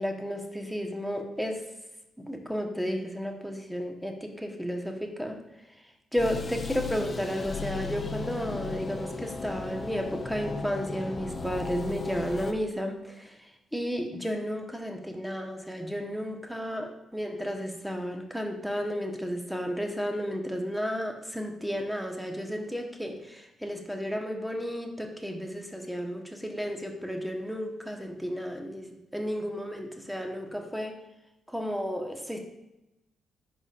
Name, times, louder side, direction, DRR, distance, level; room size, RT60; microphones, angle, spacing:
voice 1, 0.0-1.6 2.2-5.4 6.1-31.0 31.5-32.4, equal, ahead, 3 dB, 1.3 m, -33 dB
sound 1, 6.2-12.5, left 4 dB, 40° left, 0.6 m, -36 dB
10.5 x 4.1 x 2.6 m, 0.92 s
hypercardioid pair, 40°, 0 cm